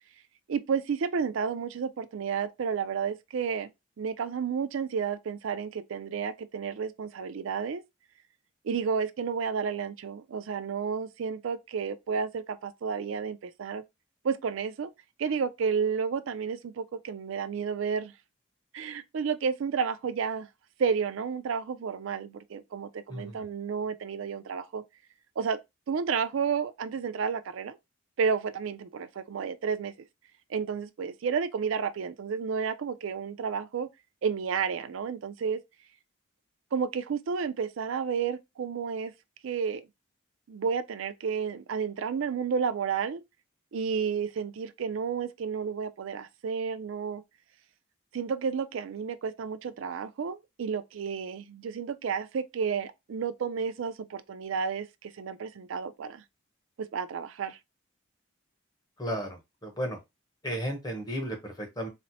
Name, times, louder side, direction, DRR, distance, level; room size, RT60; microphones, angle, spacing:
voice 1, 0.5-3.7 4.0-7.8 8.6-13.8 14.2-14.9 15.2-18.1 18.7-20.5 20.8-24.8 25.4-25.6 25.9-27.8 28.2-29.9 30.5-33.9 34.2-35.6 36.7-39.1 39.4-39.8 40.5-43.2 43.7-47.2 48.1-56.2 56.9-57.6, right 6 dB, 70° right, 0.4 m, -31 dB
voice 2, 59.0-60.0 60.4-61.9, equal, 20° left, 0.8 m, -34 dB
4.1 x 2.0 x 2.7 m
head